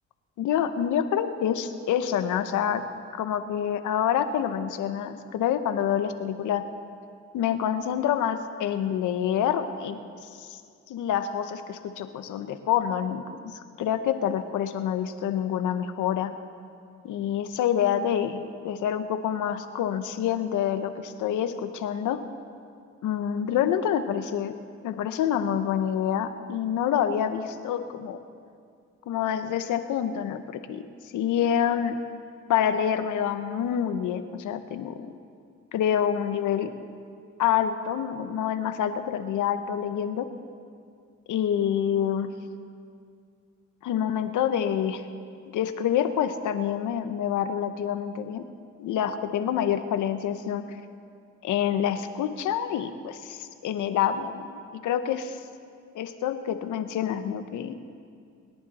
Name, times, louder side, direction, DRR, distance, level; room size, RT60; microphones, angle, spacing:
voice 1, 0.4-2.8 3.1-6.6 7.3-10.0 10.3-10.6 10.9-16.3 17.0-22.2 23.0-24.5 24.8-28.2 29.1-32.0 32.5-35.1 35.7-36.7 37.4-40.3 41.3-42.3 43.8-45.0 45.5-48.4 48.8-50.6 51.4-55.4 55.9-57.8, left 9 dB, 80° left, 10 dB, 0.9 m, -27 dB
22.5 x 10.5 x 4.2 m, 2.3 s
cardioid pair, 90°, 30 cm